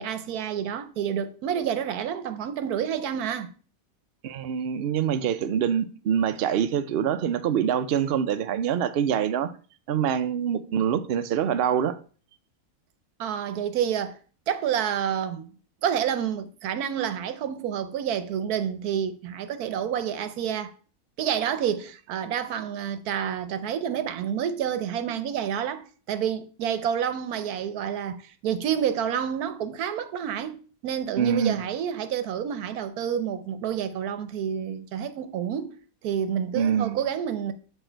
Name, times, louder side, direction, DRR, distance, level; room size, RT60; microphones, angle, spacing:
voice 1, 0.0-3.5 13.2-14.2 14.5-15.5 15.8-20.7 21.2-35.8 36.0-37.5, right 9 dB, 85° right, 1.2 m, -29 dB
voice 2, 4.2-9.5 9.9-12.0 31.2-31.6 36.5-37.0, right 8 dB, 60° right, 0.6 m, -25 dB
7.3 x 4.6 x 4.4 m
omnidirectional pair, 1.6 m